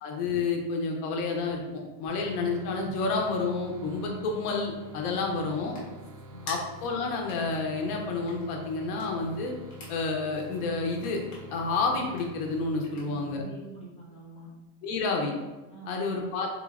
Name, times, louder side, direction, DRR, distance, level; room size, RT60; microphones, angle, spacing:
voice 1, 0.0-5.7 6.5-9.5 9.9-11.2 11.5-13.4 14.8-15.3 15.9-16.5, left 3 dB, 80° left, 1 dB, 0.8 m, -30 dB
sound 1, 2.1-13.4, right 1 dB, 50° right, 0.6 m, -47 dB
sound 2, 4.7-13.4, left 2 dB, 50° left, 1.3 m, -50 dB
voice 2, 12.9-14.5 15.7-16.2, right 2 dB, 15° left, -7 dB, 0.7 m, -44 dB
3.8 x 3.0 x 2.4 m, 1.2 s
cardioid pair, 175°, 44 cm